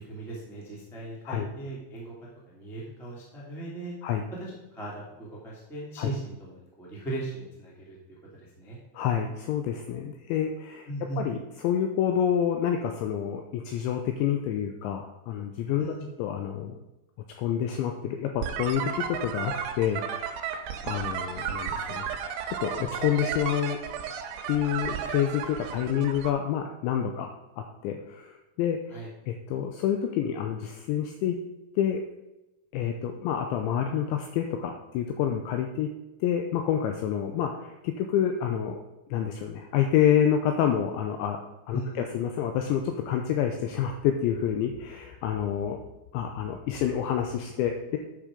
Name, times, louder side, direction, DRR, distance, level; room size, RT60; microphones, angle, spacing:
voice 1, 0.0-2.1 2.5-3.9 4.3-8.8 10.8-11.2 15.8-16.1 28.9-29.1 41.7-42.0, right 2 dB, 5° left, -5 dB, 0.3 m, -38 dB
voice 2, 8.9-10.9 11.2-11.4 11.6-15.9 16.2-16.8 17.4-20.3 20.8-22.1 22.5-23.8 24.5-29.0 29.3-31.4 31.8-32.0 32.7-35.9 36.2-38.8 39.1-41.4 41.7-45.8 46.1-48.0, left 9 dB, 85° left, 5 dB, 2.6 m, -28 dB
sound 1, 18.4-26.3, right 8 dB, 80° right, 3.1 m, -33 dB
9.8 x 6.5 x 5.0 m, 0.98 s
omnidirectional pair, 5.9 m